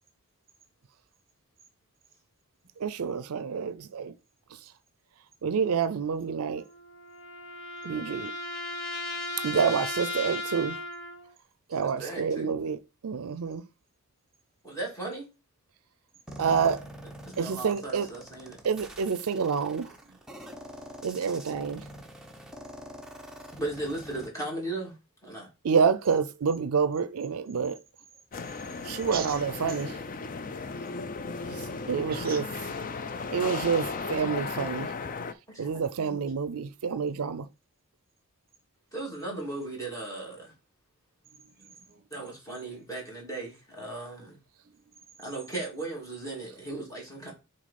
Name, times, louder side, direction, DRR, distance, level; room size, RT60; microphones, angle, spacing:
voice 1, 2.8-4.1 5.4-6.6 7.8-8.3 9.4-10.8 11.7-13.6 16.4-16.8 17.4-18.1 18.6-19.9 21.0-21.8 25.6-27.8 28.8-29.9 31.5-31.6 31.9-32.4 33.3-34.9 35.6-37.5, right 6 dB, 75° right, 0.5 m, -28 dB
sound 1, 6.6-11.3, left 2 dB, 60° left, 1.3 m, -36 dB
voice 2, 11.8-12.5 14.6-15.3 17.3-18.6 23.6-24.9 25.2-25.5 35.5-36.2 38.9-40.5 42.1-44.4 45.2-47.3, right 2 dB, 15° left, 2.5 m, -37 dB
sound 2, 16.3-24.3, equal, ahead, 0.8 m, -45 dB
voice 3, 19.9-20.2 28.7-30.0 32.1-32.9 41.4-42.7 44.7-44.8 45.2-45.4, right 6 dB, 40° right, 0.9 m, -43 dB
sound 3, 28.3-35.3, left 4 dB, 40° left, 0.5 m, -35 dB
6.2 x 4.1 x 4.2 m
head